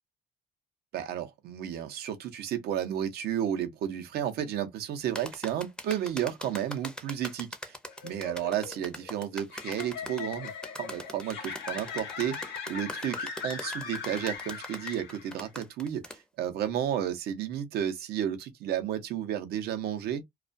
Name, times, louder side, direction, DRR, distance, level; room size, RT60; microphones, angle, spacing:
voice 1, 0.9-7.8 8.0-10.5 10.8-20.2, right 10 dB, 70° right, 0.7 m, -32 dB
sound 1, 5.2-16.2, left 1 dB, 5° left, 0.5 m, -41 dB
sound 2, 7.9-15.5, left 6 dB, 80° left, 0.8 m, -40 dB
2.3 x 2.2 x 2.5 m
cardioid pair, 110°, 17 cm